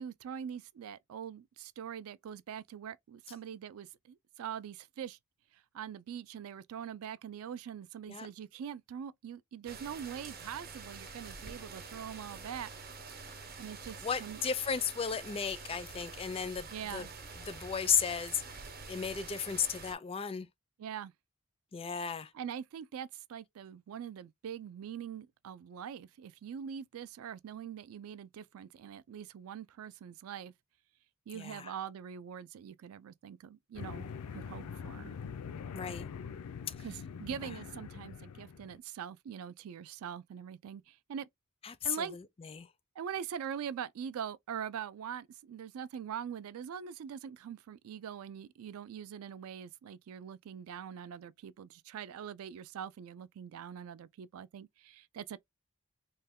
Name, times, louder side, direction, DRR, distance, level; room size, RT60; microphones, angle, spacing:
voice 1, 0.0-5.2 5.5-12.7 13.6-14.4 16.7-17.2 20.8-21.1 22.3-30.5 31.3-35.2 36.8-41.3 41.8-42.2 43.0-55.4, right 8 dB, 65° right, 0.3 m, -43 dB
sound 1, 9.7-19.9, right 4 dB, 45° right, 0.8 m, -47 dB
voice 2, 14.0-17.1 17.5-18.4 18.9-20.5 21.7-22.3 31.3-31.7 35.7-36.1 41.6-42.0 42.5-42.7, left 7 dB, 25° left, 0.4 m, -34 dB
sound 2, 33.7-38.8, left 6 dB, 90° left, 0.4 m, -44 dB
3.1 x 2.2 x 3.5 m
head